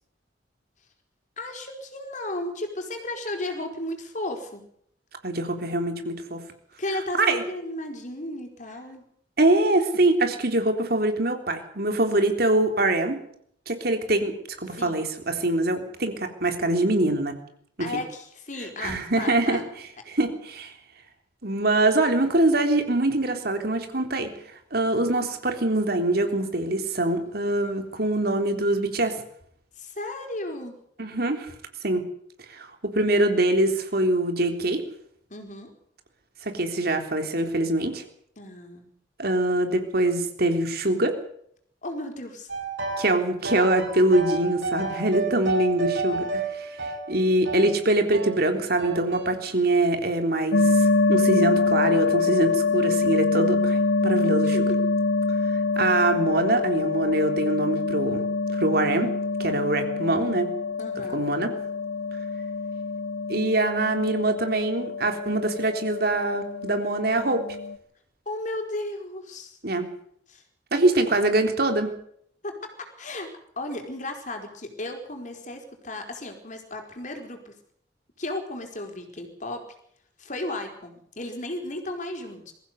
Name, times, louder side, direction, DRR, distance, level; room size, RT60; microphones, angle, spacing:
voice 1, 1.4-4.6 6.8-9.0 14.7-15.0 17.8-19.7 29.8-30.8 35.3-35.7 38.4-38.9 41.8-42.5 46.8-46.9 54.4-54.8 60.8-61.2 68.2-69.6 70.3-70.4 70.8-70.9 72.4-73.3 73.6-77.5 78.2-79.6 80.2-82.5, left 1 dB, 45° left, 4 dB, 4.7 m, -34 dB
voice 2, 5.2-6.4 7.2-7.4 9.4-13.2 13.7-17.3 17.8-17.9 18.8-19.6 20.1-20.7 21.4-24.3 24.7-29.2 31.0-31.5 31.8-32.0 32.5-34.8 36.4-38.0 39.2-41.1 43.0-54.6 55.5-58.2 58.5-59.1 59.4-60.5 61.1-61.5 63.3-67.4 69.6-69.9 70.7-71.9, right 2 dB, 55° right, 5 dB, 3.6 m, -24 dB
sound 1, 42.5-43.1 43.4-47.7 48.1-48.4 48.8-49.4, right 3 dB, 75° right, 6.9 m, -31 dB
sound 2, 50.5-67.8, left 3 dB, 70° left, 1.3 m, -25 dB
22.5 x 15.5 x 8.2 m, 0.67 s
head